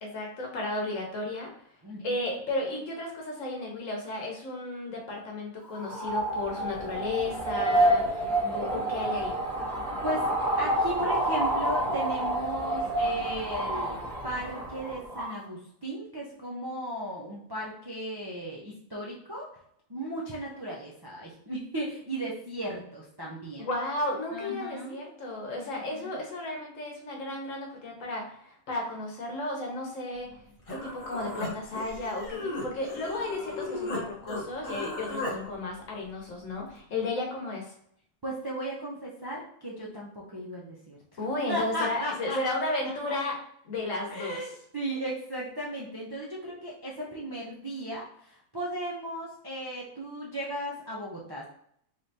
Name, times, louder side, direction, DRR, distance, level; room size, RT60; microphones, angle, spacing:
voice 1, 0.0-1.5 2.0-9.4 23.6-30.4 30.7-37.7 41.2-43.4 43.6-44.4, left 2 dB, 65° left, 0 dB, 1.3 m, -34 dB
voice 2, 1.8-2.2 8.4-8.9 10.0-10.3 10.6-19.5 19.9-23.7 24.3-25.1 25.9-26.2 38.2-42.4 43.1-43.2 44.1-51.5, right 1 dB, 35° right, -4 dB, 0.4 m, -36 dB
sound 1, 5.6-15.4, right 1 dB, ahead, 1.2 m, -28 dB
Human voice, 30.3-30.4 30.7-34.0 34.3-35.4, left 2 dB, 25° left, 0.9 m, -35 dB
3.7 x 3.3 x 2.7 m, 0.67 s
omnidirectional pair, 1.5 m